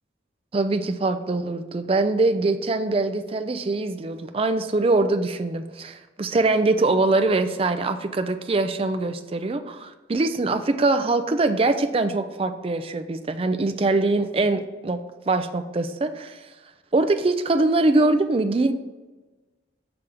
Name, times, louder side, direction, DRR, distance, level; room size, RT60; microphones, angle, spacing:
voice 1, 0.5-15.0 15.3-16.4 16.9-18.7, right 2 dB, 30° right, 8 dB, 0.4 m, -23 dB
6.9 x 3.5 x 5.1 m, 1.2 s
head